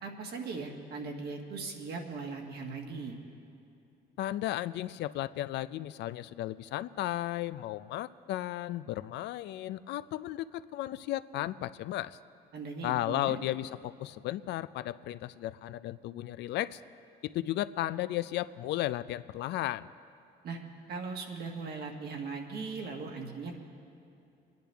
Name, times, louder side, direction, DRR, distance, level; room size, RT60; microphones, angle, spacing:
voice 1, 0.0-3.1 12.5-13.4 20.4-20.6 20.9-23.6, right 4 dB, 65° right, 1 dB, 1.7 m, -39 dB
voice 2, 4.2-12.2 12.8-16.8 17.2-19.9, left 14 dB, 75° left, 15 dB, 0.4 m, -34 dB
23.0 x 10.5 x 3.4 m, 2.7 s
cardioid pair, 100°, 18 cm